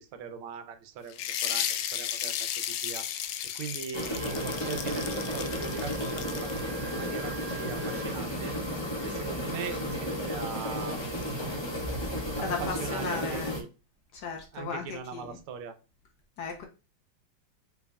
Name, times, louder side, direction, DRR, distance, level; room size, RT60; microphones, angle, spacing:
voice 1, 0.0-3.1 3.5-8.6 9.0-11.0 12.3-13.7 14.5-15.8, right 6 dB, 80° right, 1.5 m, -40 dB
sound 1, 1.1-6.6, left 10 dB, 85° left, 1.5 m, -34 dB
sound 2, 3.9-13.6, equal, 30° left, 0.4 m, -33 dB
Wind instrument woodwind instrument, 4.2-8.1, right 8 dB, 40° right, 0.7 m, -48 dB
voice 2, 12.4-13.5 14.1-15.4 16.4-16.7, left 5 dB, 60° left, 1.2 m, -36 dB
5.7 x 4.0 x 2.3 m
omnidirectional pair, 2.3 m